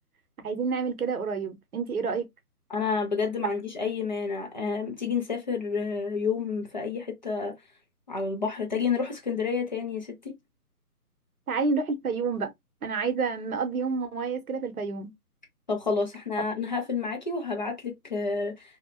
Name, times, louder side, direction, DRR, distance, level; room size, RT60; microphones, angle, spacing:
voice 1, 0.4-2.3 11.5-12.5 12.8-15.1, right 4 dB, 65° right, 0.8 m, -29 dB
voice 2, 2.7-7.6 8.1-10.3 15.7-18.8, left 5 dB, 30° left, 0.6 m, -29 dB
2.7 x 2.2 x 2.5 m
figure-of-eight pair, 155°, 47 cm